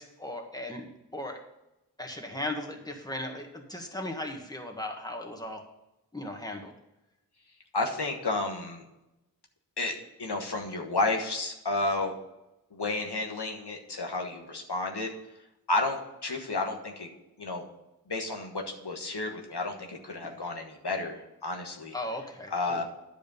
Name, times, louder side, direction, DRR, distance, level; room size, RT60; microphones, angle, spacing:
voice 1, 0.0-1.4 2.0-5.6 6.1-6.7 20.2-20.4 21.9-22.8, left 1 dB, 10° left, 2 dB, 1.8 m, -37 dB
voice 2, 7.7-8.9 9.8-12.1 12.7-15.1 15.7-17.1 17.4-17.6 18.1-21.9 22.5-22.8, left 2 dB, 90° left, 2 dB, 1.4 m, -31 dB
10.5 x 5.0 x 6.9 m, 0.93 s
wide cardioid pair, 40°, 39 cm